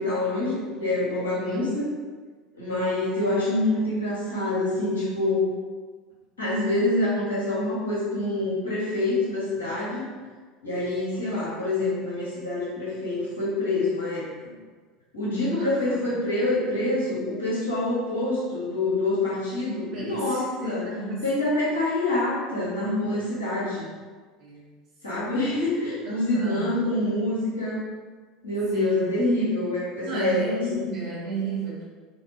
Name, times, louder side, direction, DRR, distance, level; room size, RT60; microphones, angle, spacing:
voice 1, 0.0-1.8 2.5-5.5 6.4-10.0 10.6-14.3 15.1-20.8 21.2-23.9 25.0-27.8 28.4-30.8, left 2 dB, 80° left, -10 dB, 1.3 m, -26 dB
voice 2, 1.4-1.8 11.1-11.2 15.6-16.1 19.9-21.3 24.4-24.7 26.1-26.8 28.7-29.1 30.0-31.8, right 2 dB, 50° right, -5 dB, 1.1 m, -33 dB
2.7 x 2.6 x 2.9 m, 1.4 s
figure-of-eight pair, 70°, 0 cm